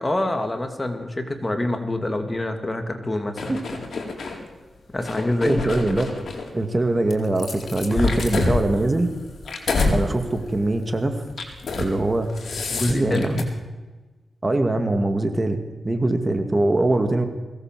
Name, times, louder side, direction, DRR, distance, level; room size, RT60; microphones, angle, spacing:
voice 1, 0.0-3.6 4.9-5.8 7.9-8.2 12.7-13.3, left 1 dB, 20° left, 6 dB, 2.5 m, -26 dB
sound 1, 3.4-4.4 5.0-6.5 7.1-10.0 10.4-10.7 11.3-11.9 12.2-13.4, left 3 dB, 70° left, 4.4 m, -27 dB
voice 2, 5.4-6.1 6.5-9.1 9.9-11.2 11.8-12.3 12.9-13.5 14.4-15.6 15.8-17.3, right 2 dB, 25° right, 7 dB, 2.1 m, -22 dB
22.5 x 17.5 x 7.6 m, 1.2 s
wide cardioid pair, 115°, 0 cm